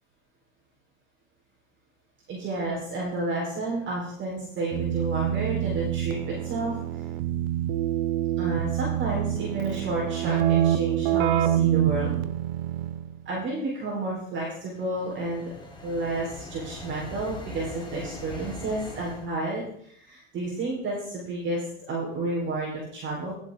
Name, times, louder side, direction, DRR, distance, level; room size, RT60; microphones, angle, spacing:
voice 1, 2.3-6.7 8.4-12.2 13.2-15.5 15.8-23.3, right 2 dB, 30° right, -4 dB, 4.3 m, -31 dB
Keyboard (musical), 4.7-13.1, right 12 dB, 55° right, 0.9 m, -26 dB
sound 1, 14.6-19.3, left 1 dB, 10° left, 2.0 m, -41 dB
15.5 x 7.5 x 3.9 m, 0.64 s
hypercardioid pair, 110°, 38 cm